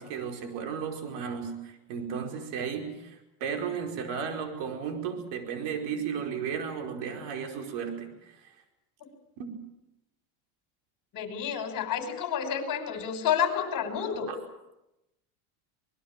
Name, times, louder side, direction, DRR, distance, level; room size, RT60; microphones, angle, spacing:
voice 1, 0.0-8.5 9.4-9.6 14.3-14.4, right 7 dB, 65° right, 4 dB, 5.0 m, -34 dB
voice 2, 11.1-14.3, left 8 dB, 45° left, 6 dB, 5.7 m, -29 dB
25.5 x 21.0 x 7.4 m, 0.90 s
supercardioid pair, 120°, 45 cm